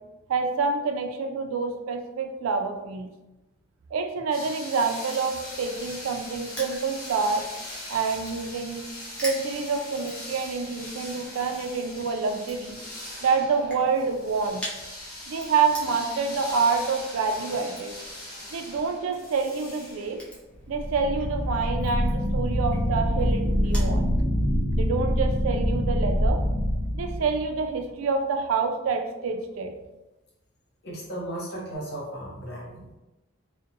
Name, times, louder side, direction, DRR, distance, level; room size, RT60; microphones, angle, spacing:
voice 1, 0.3-3.1 3.9-7.5 7.9-8.8 9.2-12.8 13.2-14.6 15.3-18.0 18.5-20.2 20.7-24.0 24.8-26.4 26.9-29.7, right 4 dB, 90° right, 5 dB, 0.3 m, -27 dB
sound 1, 4.3-20.3, left 1 dB, 85° left, 0.9 m, -41 dB
Crushing, 5.4-24.0, equal, 5° left, 0.5 m, -46 dB
sound 2, 20.7-27.7, equal, 25° right, 0.8 m, -25 dB
voice 2, 30.8-33.0, right 1 dB, 50° left, -3 dB, 0.7 m, -35 dB
2.6 x 2.1 x 2.5 m, 1.0 s
head